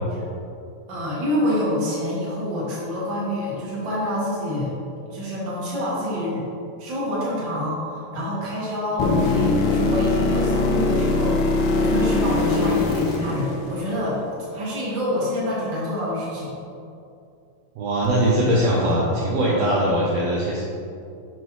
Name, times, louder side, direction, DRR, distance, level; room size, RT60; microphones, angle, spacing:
voice 1, 0.9-4.7 5.1-6.5 6.8-14.2 14.5-16.5, left 1 dB, 45° right, -7 dB, 1.9 m, -27 dB
sound 1, 9.0-14.1 18.0-18.1, left 3 dB, 85° left, 2.4 m, -21 dB
voice 2, 17.8-20.6, right 1 dB, 75° right, -5 dB, 1.6 m, -21 dB
8.0 x 5.5 x 3.1 m, 2.6 s
omnidirectional pair, 3.9 m